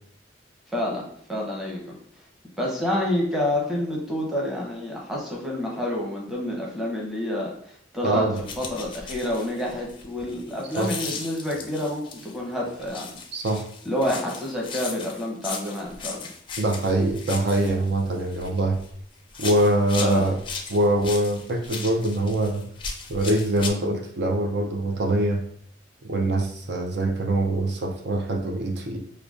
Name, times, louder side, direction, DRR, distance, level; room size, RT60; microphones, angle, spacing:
voice 1, 0.7-1.9 2.6-13.1 13.8-16.3 20.0-20.3, left 1 dB, ahead, -4 dB, 0.8 m, -28 dB
voice 2, 8.0-8.4 10.8-10.9 13.3-13.6 16.6-18.8 19.4-20.4 20.7-22.7 23.1-25.4 26.0-29.0, right 1 dB, 65° right, 2 dB, 0.5 m, -23 dB
sound 1, 8.4-12.4 12.8-18.9 19.3-23.7, left 5 dB, 30° left, 0.4 m, -37 dB
4.9 x 2.2 x 2.4 m, 0.63 s
head